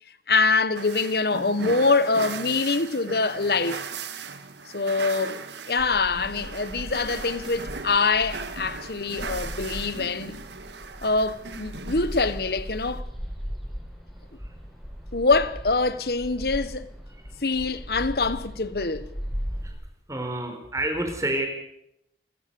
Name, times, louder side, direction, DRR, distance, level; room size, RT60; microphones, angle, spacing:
voice 1, 0.3-3.8 4.7-5.4 5.7-10.4 11.0-13.1 15.1-16.9 17.4-19.1, left 3 dB, 60° left, 1.2 m, -24 dB
sound 1, 0.8-13.0, right 4 dB, 80° right, 1.9 m, -38 dB
sound 2, 5.8-19.7, equal, ahead, 6.7 m, -38 dB
voice 2, 20.1-21.5, right 1 dB, 20° right, 4.1 m, -29 dB
29.5 x 14.5 x 7.0 m
head